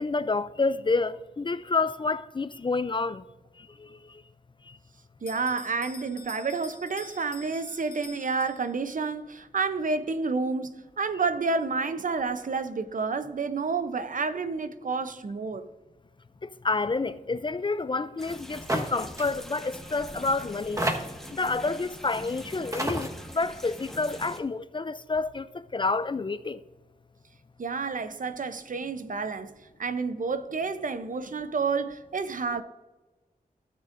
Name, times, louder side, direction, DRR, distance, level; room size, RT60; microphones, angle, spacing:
voice 1, 0.0-3.2 3.8-3.9 16.4-20.8 21.3-25.5 25.7-26.6, left 3 dB, 30° left, 0.4 m, -29 dB
voice 2, 5.2-15.7 27.6-29.5 29.8-32.6, right 4 dB, 60° right, 0.6 m, -30 dB
Bell, 5.3-9.0, left 4 dB, 75° left, 1.1 m, -48 dB
sound 1, 18.2-24.4, equal, 5° left, 1.2 m, -43 dB
sound 2, 18.7-18.9 19.2-19.3 20.2-20.3 20.8-21.3 22.3-22.4 22.7-23.1, right 1 dB, 20° right, 1.3 m, -28 dB
17.0 x 6.5 x 2.6 m
cardioid pair, 60°, 16 cm